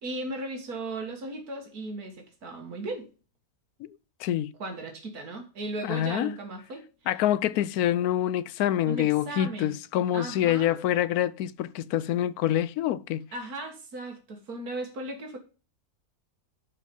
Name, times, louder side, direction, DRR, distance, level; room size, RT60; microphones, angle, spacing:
voice 1, 0.0-3.1 4.6-6.9 8.9-9.8 10.1-10.8 13.3-15.4, right 2 dB, 85° right, 2.2 m, -36 dB
voice 2, 4.2-4.5 5.8-6.3 7.1-13.2, left 12 dB, 85° left, 1.1 m, -26 dB
11.0 x 4.8 x 5.3 m
omnidirectional pair, 1.5 m